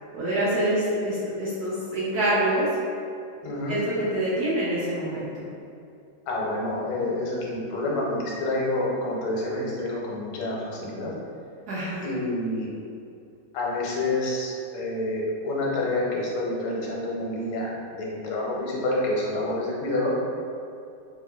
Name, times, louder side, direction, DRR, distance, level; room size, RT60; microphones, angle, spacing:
voice 1, 0.1-2.7 3.7-5.5 11.7-12.1, right 1 dB, 70° right, -9 dB, 0.9 m, -26 dB
voice 2, 3.4-3.8 6.3-11.1 12.0-12.7 13.5-20.3, left 1 dB, 90° left, -4 dB, 1.6 m, -28 dB
4.7 x 2.3 x 2.2 m, 2.5 s
omnidirectional pair, 2.2 m